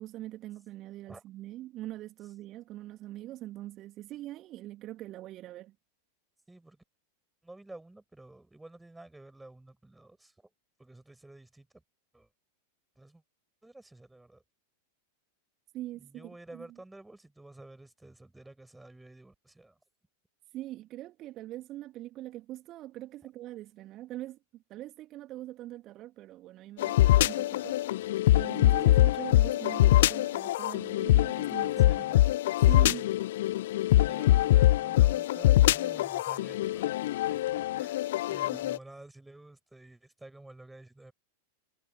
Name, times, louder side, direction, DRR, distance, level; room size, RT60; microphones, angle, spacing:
voice 1, 0.0-5.7 15.7-16.7 20.5-32.0 32.7-33.1 38.5-38.6, right 15 dB, 35° right, 1.5 m, -43 dB
voice 2, 6.5-6.8 7.4-10.5 10.8-11.8 12.1-12.3 13.0-13.2 13.6-14.4 15.9-19.8 31.8-33.2 34.1-36.9 37.3-41.1, right 2 dB, 5° right, 6.4 m, -51 dB
sound 1, 26.8-38.8, left 15 dB, 55° left, 0.3 m, -24 dB
figure-of-eight pair, 90°, 0 cm